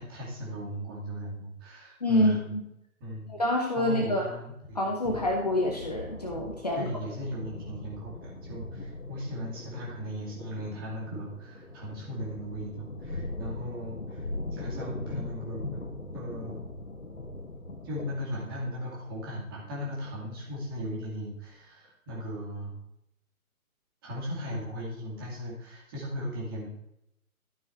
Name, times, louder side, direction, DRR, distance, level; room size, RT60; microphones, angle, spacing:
voice 1, 0.0-2.5 3.0-3.3 3.7-5.2 6.7-14.2 14.5-15.8 16.1-16.6 17.8-22.8 24.0-26.7, equal, 15° right, -5 dB, 2.3 m, -37 dB
voice 2, 2.0-2.6 3.3-4.3 4.7-6.9, left 1 dB, 25° left, 1 dB, 0.9 m, -27 dB
sound 1, 5.0-21.2, left 2 dB, 55° left, 2.2 m, -41 dB
12.5 x 5.4 x 4.4 m, 0.82 s
figure-of-eight pair, 150°, 44 cm